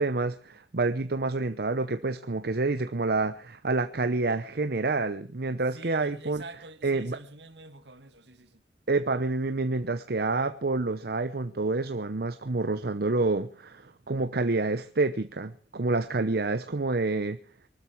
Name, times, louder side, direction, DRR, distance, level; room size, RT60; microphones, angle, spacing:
voice 1, 0.0-6.4 6.8-7.2 8.9-17.4, right 3 dB, 60° right, 0.9 m, -28 dB
voice 2, 5.7-8.6, right 3 dB, 75° right, 2.1 m, -47 dB
24.0 x 13.0 x 4.7 m
head